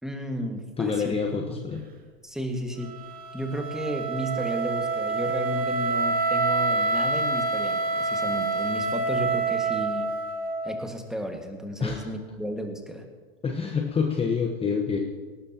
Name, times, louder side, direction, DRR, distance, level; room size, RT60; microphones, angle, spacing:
voice 1, 0.0-1.2 1.5-1.6 2.2-2.9 3.3-10.1 10.6-13.0, equal, ahead, 3 dB, 1.8 m, -33 dB
voice 2, 0.8-1.8 11.8-12.1 13.4-15.0, left 5 dB, 15° left, 2 dB, 1.2 m, -27 dB
Wind instrument woodwind instrument, 2.8-10.8, right 3 dB, 25° right, 2.0 m, -27 dB
18.0 x 18.0 x 2.9 m, 1.5 s
hypercardioid pair, 105°, 33 cm